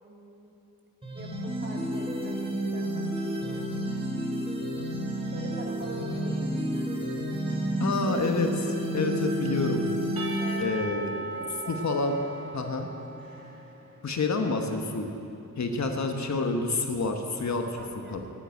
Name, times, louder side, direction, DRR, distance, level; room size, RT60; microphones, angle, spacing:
voice 1, 0.0-0.5 1.1-3.7 5.3-6.9 10.4-11.9 17.8-18.2, right 2 dB, 35° right, -1 dB, 2.3 m, -44 dB
sound 1, 1.0-10.6, equal, 15° right, 1.8 m, -30 dB
voice 2, 7.8-9.8 10.6-11.1 11.8-12.1 12.5-12.9 14.0-15.1 15.6-17.7 18.1-18.2, left 3 dB, 55° left, 4 dB, 1.2 m, -28 dB
Percussion / Church bell, 10.2-14.3, right 2 dB, 85° right, 1.8 m, -39 dB
9.7 x 9.7 x 9.2 m, 2.7 s
cardioid pair, 75°, 34 cm